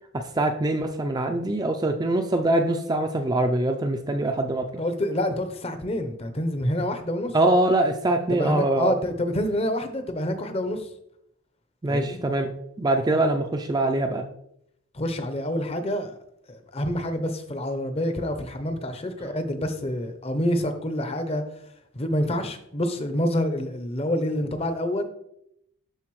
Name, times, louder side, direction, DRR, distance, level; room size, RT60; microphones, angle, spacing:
voice 1, 0.1-4.7 7.3-8.9 11.8-12.5 12.8-14.2, right 2 dB, 20° right, 5 dB, 0.4 m, -23 dB
voice 2, 4.8-7.4 8.3-10.9 11.9-12.2 14.9-16.1 16.5-21.4 21.9-25.0, left 1 dB, 30° left, 8 dB, 0.7 m, -27 dB
12.0 x 4.0 x 3.1 m, 0.75 s
head